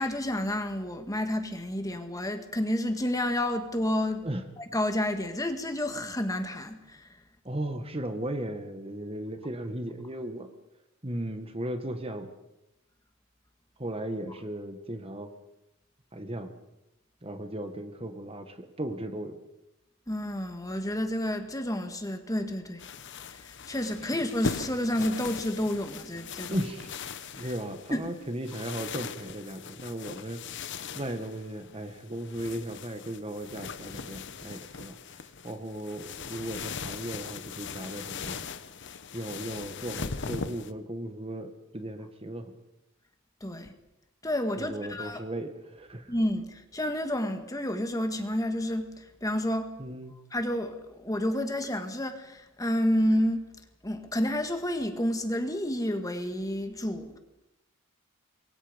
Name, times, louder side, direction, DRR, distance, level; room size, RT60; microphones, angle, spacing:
voice 1, 0.0-4.3 4.6-7.2 20.1-22.8 23.2-26.6 27.4-27.5 27.9-28.1 43.4-43.7 44.2-45.2 46.1-49.7 50.3-53.4 53.8-57.2, left 1 dB, 15° left, 1.9 m, -30 dB
voice 2, 7.4-10.5 11.0-12.3 13.8-15.3 16.1-16.5 17.2-19.4 26.5-26.9 27.4-30.4 30.9-38.5 39.1-42.6 44.6-46.1 49.8-50.1, right 1 dB, 25° right, 1.7 m, -36 dB
sound 1, 22.8-40.7, left 5 dB, 55° left, 1.1 m, -40 dB
27.0 x 23.5 x 5.3 m
head